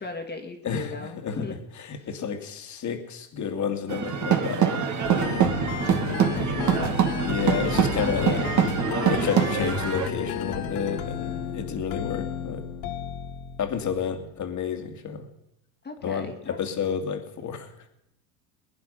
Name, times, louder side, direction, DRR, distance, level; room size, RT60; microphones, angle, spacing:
voice 1, 0.0-1.6 2.0-2.1 6.1-7.0 8.0-8.6 15.8-16.6, left 3 dB, 20° left, 3 dB, 2.2 m, -37 dB
voice 2, 0.6-1.5 1.9-4.9 7.2-8.5 9.1-12.7 13.6-15.2 16.0-17.7, left 7 dB, 40° left, 6 dB, 2.4 m, -30 dB
sound 1, 3.9-10.1, right 8 dB, 40° right, 2.5 m, -24 dB
sound 2, 5.0-14.2, left 7 dB, 80° left, 1.9 m, -32 dB
21.5 x 10.5 x 5.6 m, 0.84 s
supercardioid pair, 110°, 46 cm